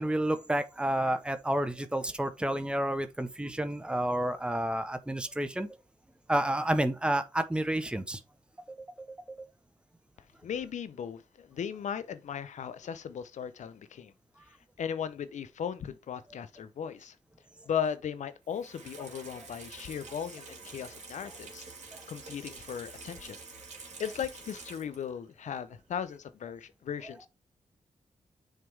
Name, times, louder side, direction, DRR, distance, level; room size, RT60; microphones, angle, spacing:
voice 1, 0.0-5.8 6.3-8.2 21.9-22.0, right 1 dB, 10° right, 0.9 m, -30 dB
voice 2, 10.4-14.1 14.8-17.2 17.7-21.6 22.1-23.4 23.8-27.3, left 8 dB, 70° left, 0.7 m, -37 dB
Water tap faucet / Sink (filling or washing), 18.4-25.2 25.5-25.6, right 4 dB, 65° right, 2.4 m, -48 dB
6.5 x 3.4 x 4.6 m
supercardioid pair, 45°, 13 cm